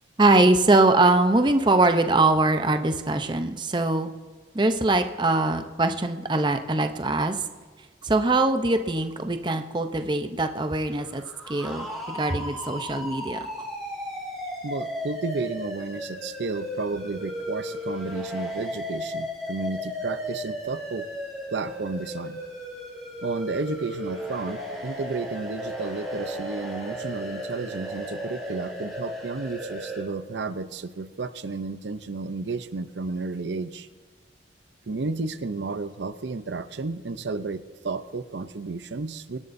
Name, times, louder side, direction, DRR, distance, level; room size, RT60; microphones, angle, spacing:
voice 1, 0.2-4.1 4.5-7.4 8.0-11.2 11.5-13.4, right 2 dB, 25° right, 7 dB, 0.6 m, -22 dB
sound 1, 11.0-30.0, equal, ahead, 3.2 m, -35 dB
voice 2, 14.6-21.1 21.5-22.4 23.2-33.9 34.9-39.4, right 3 dB, 85° right, 12 dB, 0.6 m, -32 dB
24.5 x 11.0 x 2.6 m, 1.5 s
head